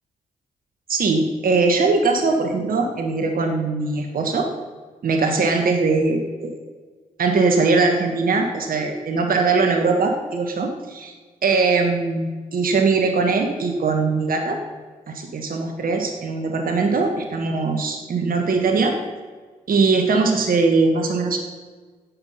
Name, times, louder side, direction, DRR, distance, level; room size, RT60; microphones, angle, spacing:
voice 1, 0.9-4.5 5.0-6.5 7.2-11.1 11.4-14.6 15.1-19.0 19.7-21.4, right 4 dB, 55° right, 4 dB, 1.5 m, -21 dB
15.5 x 6.0 x 5.5 m, 1.5 s
hypercardioid pair, 40°, 17 cm